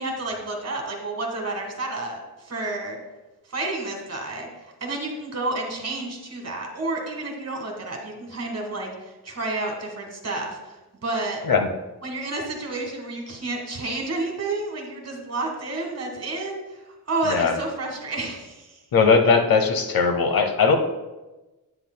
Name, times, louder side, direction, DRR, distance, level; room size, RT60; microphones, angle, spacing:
voice 1, 0.0-3.0 3.5-4.5 4.8-11.4 12.0-16.8 17.1-18.8, right 2 dB, 40° right, 2 dB, 1.7 m, -30 dB
voice 2, 18.9-20.8, left 5 dB, 65° left, 6 dB, 0.9 m, -19 dB
10.0 x 8.9 x 2.2 m, 1.1 s
wide cardioid pair, 105°, 38 cm